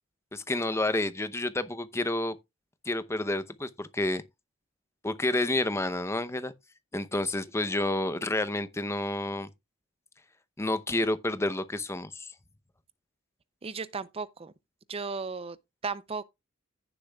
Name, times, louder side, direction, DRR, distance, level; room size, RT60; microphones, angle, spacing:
voice 1, 0.3-2.4 2.9-4.2 5.0-6.5 6.9-9.5 10.6-12.3, left 2 dB, 15° left, 0.7 m, -29 dB
voice 2, 13.6-14.5 14.9-15.6 15.8-16.2, right 4 dB, 30° right, 0.5 m, -35 dB
15.0 x 7.0 x 2.3 m
head